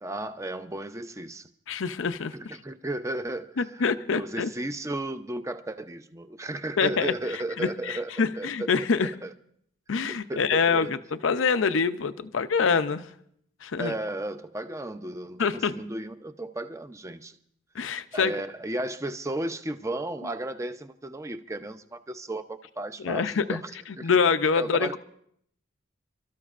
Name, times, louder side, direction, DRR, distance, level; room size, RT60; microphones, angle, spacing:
voice 1, 0.0-1.5 2.3-8.7 9.2-9.3 10.1-10.9 13.8-17.4 18.1-23.7 24.0-24.1 24.5-25.0, right 1 dB, 15° right, 9 dB, 0.6 m, -34 dB
voice 2, 1.7-2.3 3.6-4.5 6.8-9.1 9.9-13.1 13.6-13.9 15.4-15.8 17.7-18.3 23.0-23.6 23.9-25.0, left 5 dB, 85° left, 11 dB, 0.6 m, -25 dB
28.0 x 13.5 x 2.5 m, 0.68 s
head